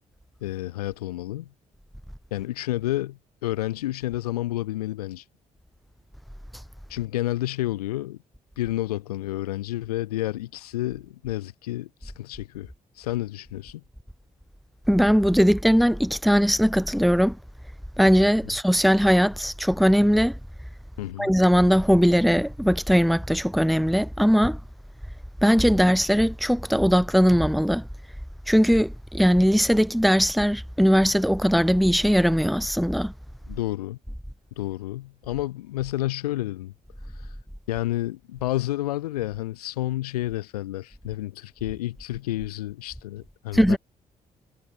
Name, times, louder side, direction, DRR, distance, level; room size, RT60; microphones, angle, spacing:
voice 1, 0.4-1.5 2.3-5.2 6.9-8.2 8.6-13.8 18.5-18.6 21.0-21.3 33.5-34.0 34.6-36.7 37.1-37.4 37.7-43.8, left 15 dB, 75° left, 1.2 m, -30 dB
voice 2, 14.9-17.4 18.0-20.4 21.2-24.6 25.4-27.9 28.5-33.1 43.5-43.8, equal, ahead, 3.9 m, -20 dB
figure-of-eight pair, 40°, 20 cm